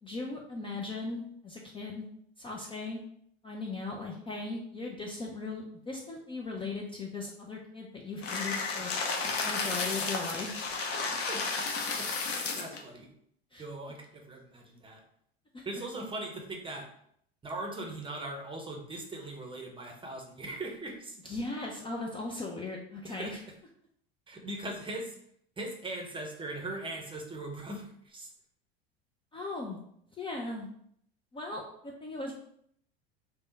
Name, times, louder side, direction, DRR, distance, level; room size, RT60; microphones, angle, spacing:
voice 1, 0.0-2.0 2.4-3.0 3.4-8.9 9.4-10.6 13.5-13.6 15.5-15.6 21.2-23.4 29.3-29.8 30.2-30.7 31.3-32.3, left 3 dB, 15° left, -1 dB, 0.5 m, -38 dB
sound 1, 8.2-12.8, left 4 dB, 45° left, 0.8 m, -32 dB
voice 2, 8.8-9.7 11.1-13.1 13.6-15.0 15.6-16.9 17.4-21.2 23.0-23.4 24.3-25.1 25.6-28.3, right 2 dB, 15° right, 2 dB, 0.8 m, -40 dB
3.4 x 2.2 x 4.0 m, 0.69 s
hypercardioid pair, 85°, 32 cm